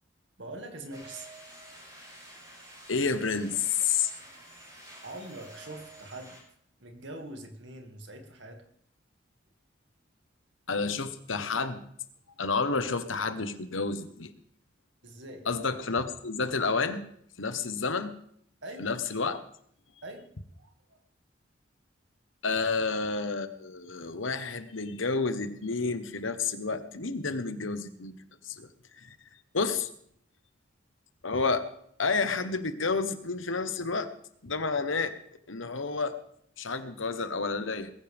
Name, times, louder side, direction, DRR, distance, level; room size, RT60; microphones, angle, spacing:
voice 1, 0.4-1.3 5.0-6.4 6.8-8.6 15.0-15.4 18.6-18.9 20.0-20.3 20.6-20.7 22.5-22.7, right 1 dB, 65° right, 4 dB, 2.4 m, -43 dB
sound 1, 0.9-6.4, right 1 dB, 20° right, 7.6 m, -50 dB
voice 2, 2.9-4.1 10.7-11.8 12.4-14.3 15.4-17.0 17.4-18.1 18.8-19.4 22.4-28.2 28.4-28.7 29.0-29.2 29.5-29.9 31.2-31.6 32.0-34.1 34.4-35.1 35.5-36.1 36.6-37.9, left 4 dB, 85° left, 10 dB, 1.3 m, -30 dB
21.0 x 14.5 x 3.6 m, 0.66 s
head